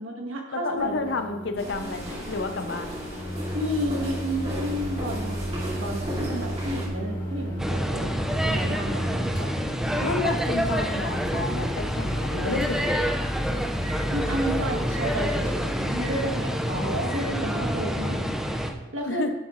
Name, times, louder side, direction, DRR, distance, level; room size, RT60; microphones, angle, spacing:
voice 1, 0.0-1.2 1.8-1.9 3.5-10.2 14.1-18.3 18.9-19.2, equal, 80° right, 1 dB, 1.7 m, -32 dB
voice 2, 0.5-3.0 10.0-13.0 16.7-17.2 19.0-19.3, left 3 dB, 60° left, 7 dB, 0.8 m, -31 dB
Microwave oven, 0.8-17.3, right 1 dB, 45° left, 1.9 m, -35 dB
sound 1, 1.6-6.9, equal, 30° right, 2.8 m, -35 dB
sound 2, 7.6-18.7, equal, ahead, 0.7 m, -27 dB
11.0 x 7.5 x 3.2 m, 1.1 s
head